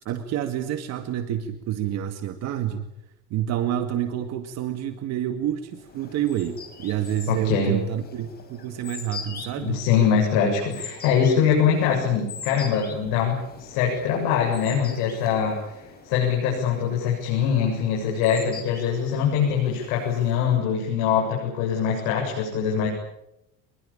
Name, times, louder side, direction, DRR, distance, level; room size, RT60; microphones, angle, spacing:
voice 1, 0.1-2.9 3.3-9.8, right 11 dB, 50° right, 7 dB, 2.2 m, -28 dB
sound 1, 5.7-20.7, left 5 dB, 30° left, 5.8 m, -43 dB
voice 2, 7.3-7.8 9.6-15.6 16.0-22.9, left 7 dB, 80° left, -1 dB, 8.0 m, -23 dB
25.5 x 22.0 x 8.9 m, 0.86 s
cardioid pair, 155°, 33 cm